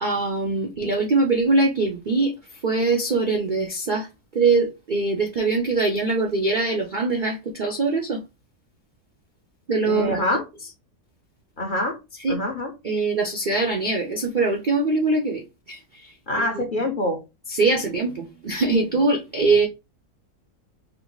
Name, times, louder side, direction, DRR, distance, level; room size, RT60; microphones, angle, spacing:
voice 1, 0.0-2.3 2.6-4.1 4.3-8.2 9.7-10.2 12.2-12.4 12.8-16.6 17.5-19.7, right 3 dB, 60° right, 0.5 m, -23 dB
voice 2, 9.9-10.4 11.6-12.0 12.3-12.7 16.3-17.2, left 1 dB, 40° left, 0.8 m, -25 dB
4.6 x 2.0 x 3.8 m
omnidirectional pair, 1.7 m